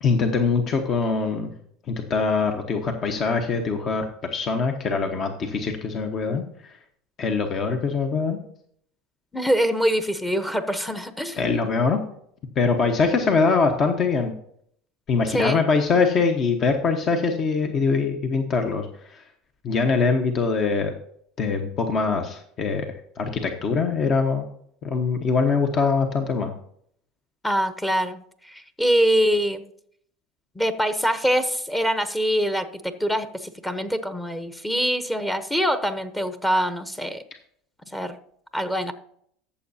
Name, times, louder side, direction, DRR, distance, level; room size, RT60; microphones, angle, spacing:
voice 1, 0.0-1.5 1.9-4.0 4.3-6.7 7.2-8.4 11.3-12.0 12.6-14.3 15.1-19.2 19.6-20.9 21.4-22.9 23.2-24.4 24.8-26.5, left 4 dB, 45° left, 5 dB, 1.2 m, -23 dB
voice 2, 9.3-11.4 15.3-15.6 27.4-29.6 30.6-37.2 37.9-38.1 38.5-38.9, equal, 10° left, 9 dB, 0.9 m, -24 dB
13.5 x 7.2 x 2.8 m, 0.66 s
supercardioid pair, 105°, 0 cm